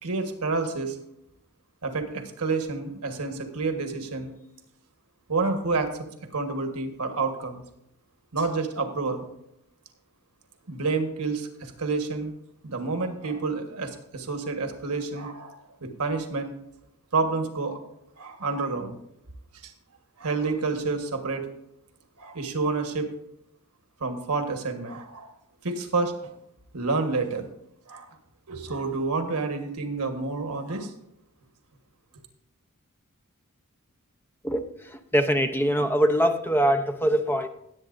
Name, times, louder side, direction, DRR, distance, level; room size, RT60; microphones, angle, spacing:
voice 1, 0.0-1.0 1.8-4.3 5.3-6.1 6.3-7.6 8.3-9.2 10.7-12.3 12.6-15.6 15.8-16.5 17.1-17.8 18.2-19.0 19.6-19.7 20.2-21.5 22.2-23.1 24.0-25.3 25.6-26.3 26.7-27.5 27.9-28.1 28.5-30.9, right 3 dB, 85° right, 1.4 m, -29 dB
voice 2, 35.1-37.5, equal, 10° left, 0.7 m, -22 dB
17.5 x 8.3 x 2.6 m
head